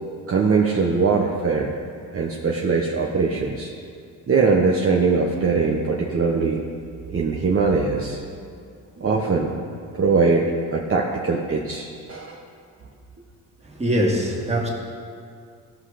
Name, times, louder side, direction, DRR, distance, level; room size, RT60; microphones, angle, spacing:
voice 1, 0.3-1.7 2.1-3.7 4.3-6.6 7.1-8.2 9.0-10.4 10.7-12.4, right 4 dB, 40° right, -1 dB, 1.0 m, -21 dB
voice 2, 13.8-14.7, equal, 20° right, -2 dB, 2.2 m, -22 dB
15.5 x 5.8 x 5.0 m, 2.3 s
cardioid pair, 75°, 34 cm